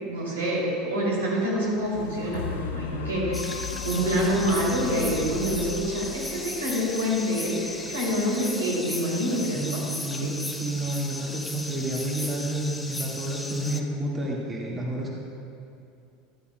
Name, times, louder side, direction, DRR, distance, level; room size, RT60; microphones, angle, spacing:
voice 1, 0.1-9.8 10.2-10.3, equal, 80° right, -4 dB, 2.6 m, -27 dB
sound 1, 1.5-9.6 10.2-10.3, left 8 dB, 75° left, 0.3 m, -37 dB
sound 2, 3.3-13.8, left 2 dB, 10° left, 0.6 m, -36 dB
voice 2, 9.5-15.1, right 1 dB, 25° right, -3 dB, 1.7 m, -30 dB
14.0 x 11.5 x 2.2 m, 2.6 s
hypercardioid pair, 80°, 0 cm